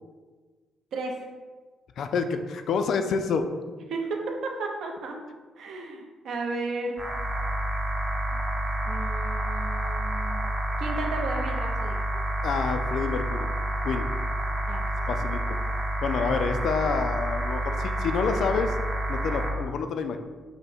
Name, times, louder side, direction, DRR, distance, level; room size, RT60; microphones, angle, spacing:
voice 1, 0.9-1.3 3.9-5.2 5.6-7.0 8.9-10.4 10.8-12.0 14.7-15.2, right 3 dB, 55° right, 2 dB, 0.6 m, -34 dB
voice 2, 2.0-3.5 12.4-13.5 13.8-14.1 15.1-15.6 16.0-18.8 19.1-20.2, left 5 dB, 50° left, 7 dB, 0.3 m, -28 dB
sound 1, 7.0-19.5, right 1 dB, 15° right, 0.6 m, -29 dB
5.3 x 2.1 x 4.3 m, 1.4 s
cardioid pair, 175°, 0 cm